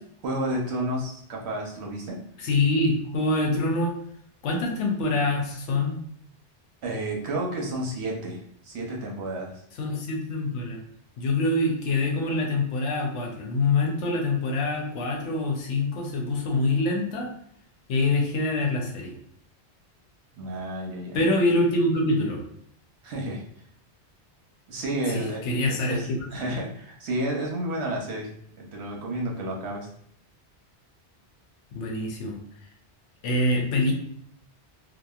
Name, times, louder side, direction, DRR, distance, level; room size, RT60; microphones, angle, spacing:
voice 1, 0.2-2.2 6.8-9.6 20.4-21.2 23.0-23.4 24.7-28.3 28.6-29.9, right 1 dB, 70° right, -1 dB, 1.0 m, -31 dB
voice 2, 2.4-3.9 4.4-6.0 9.8-10.8 11.2-17.3 17.9-19.1 21.1-22.4 25.1-26.0 31.7-32.4 33.2-33.9, left 2 dB, 90° left, 1 dB, 0.9 m, -25 dB
2.9 x 2.2 x 2.3 m, 0.67 s
omnidirectional pair, 1.2 m